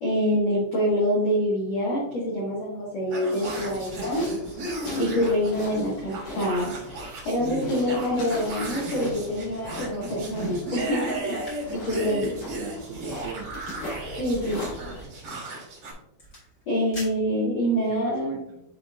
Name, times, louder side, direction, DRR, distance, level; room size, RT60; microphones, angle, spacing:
voice 1, 0.0-4.2 5.0-6.7 7.2-12.3 14.2-14.6 15.5-15.6 16.7-18.4, equal, 75° left, -7 dB, 1.5 m, -26 dB
sound 1, 3.1-15.9, right 1 dB, 50° right, 1.8 m, -35 dB
sound 2, 3.4-15.0, left 1 dB, 55° left, 4.3 m, -40 dB
sound 3, 11.0-18.0, left 1 dB, 30° left, 1.7 m, -50 dB
voice 2, 11.8-13.5 17.9-18.6, right 6 dB, 80° right, 1 dB, 2.9 m, -38 dB
10.0 x 4.5 x 2.5 m, 0.80 s
omnidirectional pair, 5.9 m